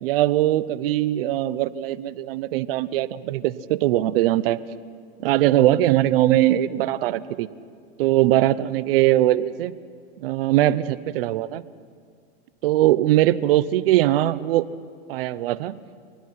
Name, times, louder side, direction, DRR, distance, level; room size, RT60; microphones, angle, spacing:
voice 1, 0.0-4.6 5.2-7.5 8.0-9.7 10.2-11.6 12.6-14.6 15.1-15.8, right 14 dB, 65° right, 17 dB, 0.9 m, -21 dB
24.0 x 19.0 x 5.7 m, 2.1 s
hypercardioid pair, 110°, 31 cm